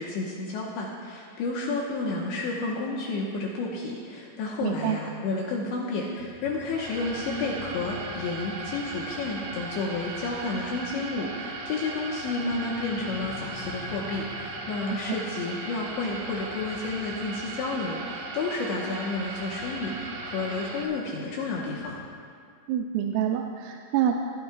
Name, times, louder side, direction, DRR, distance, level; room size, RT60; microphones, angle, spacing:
voice 1, 0.0-22.0, left 3 dB, 75° left, -3 dB, 3.1 m, -31 dB
voice 2, 4.6-5.0 22.7-24.1, right 10 dB, 85° right, 2 dB, 3.2 m, -27 dB
sound 1, 6.2-22.0, left 3 dB, 50° left, 1.1 m, -46 dB
sound 2, 6.7-20.8, right 3 dB, 65° right, 2.5 m, -38 dB
23.0 x 14.5 x 2.4 m, 2.2 s
omnidirectional pair, 5.9 m